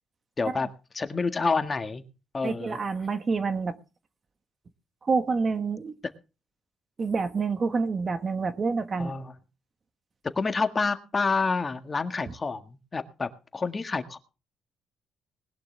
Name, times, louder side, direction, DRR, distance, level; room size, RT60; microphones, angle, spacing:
voice 1, 0.4-0.7 0.9-2.0 2.3-2.8 9.0-9.3 10.3-14.2, left 4 dB, 30° left, 8 dB, 1.7 m, -28 dB
voice 2, 2.4-3.8 5.0-5.9 7.0-9.1, right 4 dB, 40° right, 10 dB, 1.4 m, -27 dB
20.0 x 11.5 x 3.4 m, 0.33 s
cardioid pair, 90°, 0 cm